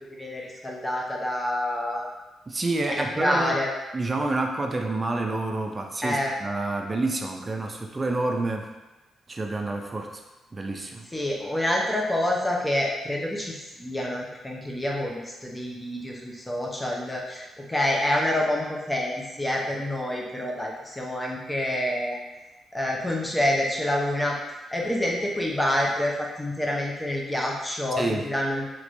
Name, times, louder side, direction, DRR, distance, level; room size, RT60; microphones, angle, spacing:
voice 1, 0.2-2.1 2.9-3.7 6.0-6.3 11.1-22.2 22.7-24.4 24.7-28.7, left 1 dB, 15° left, -2 dB, 0.7 m, -27 dB
voice 2, 2.5-3.6 3.9-8.7 9.3-10.2 10.5-11.1 27.9-28.3, right 2 dB, 35° right, 3 dB, 0.5 m, -28 dB
3.1 x 3.0 x 2.6 m, 1.1 s
supercardioid pair, 60°, 0 cm